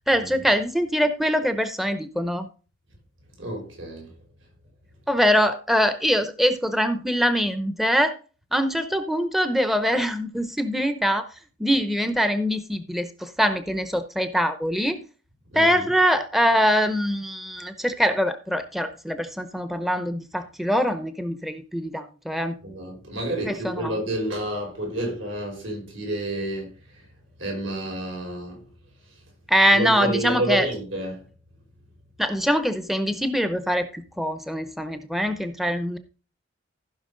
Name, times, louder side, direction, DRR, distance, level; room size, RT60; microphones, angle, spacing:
voice 1, 0.1-2.5 5.1-8.1 8.5-11.3 11.6-15.0 15.5-22.5 23.4-23.9 29.5-30.7 32.2-36.0, equal, ahead, 0.7 m, -23 dB
voice 2, 3.4-4.1 15.5-15.8 22.6-27.1 27.4-28.7 29.7-31.3, right 1 dB, 80° right, 5.2 m, -30 dB
15.0 x 5.9 x 3.9 m
head